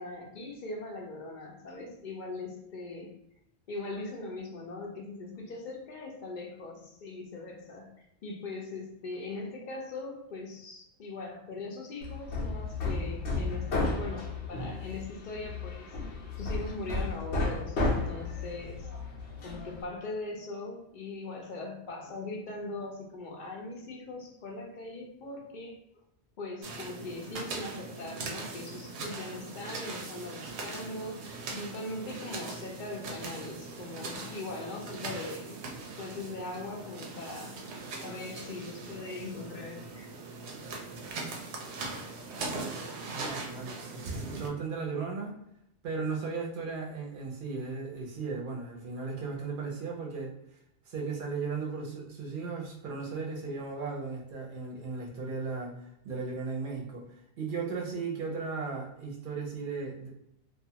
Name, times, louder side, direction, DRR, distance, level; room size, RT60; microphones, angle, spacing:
voice 1, 0.0-3.1 3.7-15.9 16.3-18.9 19.4-25.8 26.4-35.6 36.0-37.6 38.0-40.1, left 2 dB, 55° left, 0 dB, 0.6 m, -40 dB
Hammer, 12.0-19.8, left 3 dB, 90° left, 1.0 m, -33 dB
sound 1, 26.6-44.5, right 3 dB, 85° right, 0.8 m, -40 dB
voice 2, 43.1-45.4 45.8-50.6 50.8-60.1, right 4 dB, 60° right, 0 dB, 0.8 m, -36 dB
2.4 x 2.3 x 2.7 m, 0.79 s
omnidirectional pair, 1.1 m